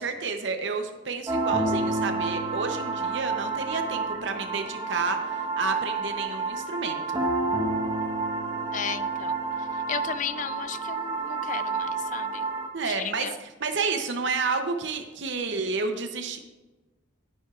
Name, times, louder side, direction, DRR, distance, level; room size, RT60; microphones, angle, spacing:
voice 1, 0.0-7.2 12.7-16.4, right 4 dB, 60° right, 5 dB, 0.8 m, -30 dB
sound 1, 1.3-12.7, right 3 dB, 20° right, 1.1 m, -29 dB
voice 2, 8.7-9.3 9.9-12.4 12.9-13.3, left 8 dB, 40° left, 14 dB, 0.4 m, -34 dB
11.5 x 10.0 x 2.5 m, 1.2 s
head